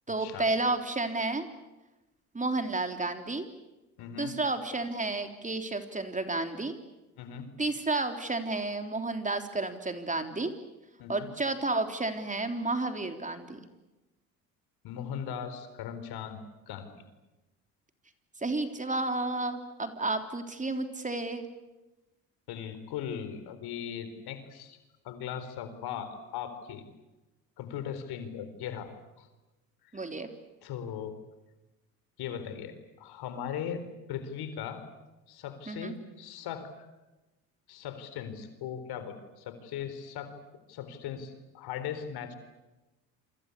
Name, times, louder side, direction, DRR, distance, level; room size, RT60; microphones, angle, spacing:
voice 1, 0.1-1.5 2.3-3.5 4.2-6.8 7.6-10.5 11.1-13.6 18.4-21.5 29.9-30.3 35.7-36.0, right 2 dB, 20° right, 6 dB, 3.6 m, -31 dB
voice 2, 4.0-4.4 7.2-7.5 11.0-11.3 14.8-16.4 16.7-16.9 22.5-24.8 25.0-26.8 27.6-28.9 29.2-29.3 29.8-29.9 30.6-31.2 32.2-33.8 34.1-34.8 35.3-36.9 37.7-40.3 40.7-42.3, left 8 dB, 65° left, 10 dB, 4.2 m, -38 dB
28.5 x 24.5 x 8.5 m, 1.1 s
hypercardioid pair, 70°, 41 cm